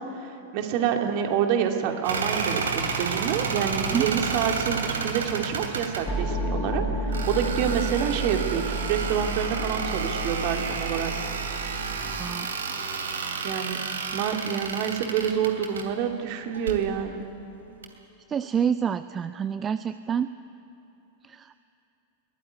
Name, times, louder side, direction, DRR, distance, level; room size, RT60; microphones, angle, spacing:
voice 1, 0.0-11.1 13.4-13.8 14.1-17.3, right 8 dB, 45° right, 4 dB, 2.5 m, -27 dB
sound 1, 2.0-6.0 7.1-15.9 16.5-16.8 17.8-17.9, right 5 dB, 65° right, 2.7 m, -31 dB
sound 2, 6.1-12.3, right 1 dB, 15° left, 4.1 m, -31 dB
voice 2, 12.2-12.6 18.3-20.3 21.2-21.6, right 7 dB, 25° right, 13 dB, 0.5 m, -28 dB
22.0 x 18.0 x 9.6 m, 3.0 s
figure-of-eight pair, 90°, 0 cm